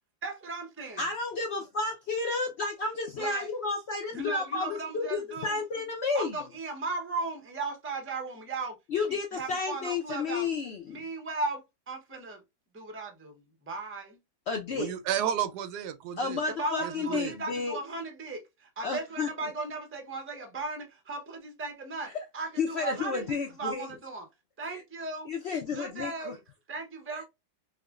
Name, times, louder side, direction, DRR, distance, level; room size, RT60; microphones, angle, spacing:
voice 1, 0.2-1.1 3.2-3.5 4.1-5.6 6.1-8.8 9.3-10.5 10.9-12.4 12.7-14.2 16.5-24.3 24.6-25.3 25.7-26.4 26.7-27.2, right 3 dB, 20° right, 0.3 m, -37 dB
voice 2, 1.0-6.3 8.9-11.0 14.5-14.9 16.2-17.8 18.8-19.3 22.6-23.9 25.3-26.3, left 4 dB, 70° left, 0.6 m, -31 dB
voice 3, 14.7-16.4 16.8-17.3, right 10 dB, 90° right, 1.2 m, -32 dB
4.7 x 2.1 x 2.3 m
omnidirectional pair, 1.7 m